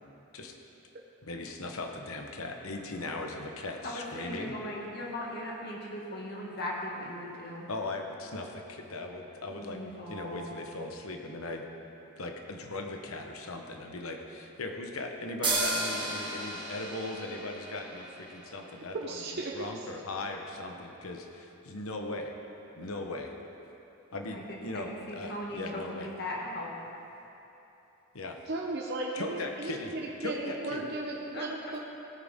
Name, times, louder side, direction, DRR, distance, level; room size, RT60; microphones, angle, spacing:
voice 1, 1.2-4.5 7.7-9.8 10.1-11.6 12.2-22.3 22.8-23.3 24.1-26.1 28.1-28.4 29.1-29.9 30.2-30.9, left 2 dB, 75° left, 3 dB, 1.1 m, -38 dB
voice 2, 3.8-7.7 9.5-10.5 24.3-24.4 24.7-26.7 31.3-31.4, left 1 dB, 50° left, -3 dB, 2.1 m, -38 dB
sound 1, 15.4-19.0, right 2 dB, 20° right, 1.6 m, -34 dB
voice 3, 18.9-19.5 28.5-31.8, right 2 dB, 50° right, -2 dB, 0.8 m, -35 dB
17.5 x 9.2 x 3.7 m, 3.0 s
head